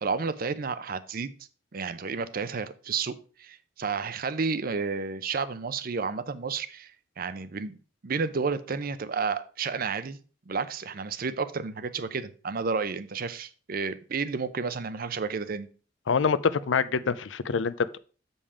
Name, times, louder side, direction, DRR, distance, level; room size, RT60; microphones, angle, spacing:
voice 1, 0.0-1.3 1.7-6.9 7.2-7.8 8.0-10.2 10.5-15.7, right 5 dB, 50° right, 0.6 m, -31 dB
voice 2, 16.1-18.0, left 5 dB, 90° left, 0.5 m, -25 dB
7.2 x 5.4 x 4.9 m
head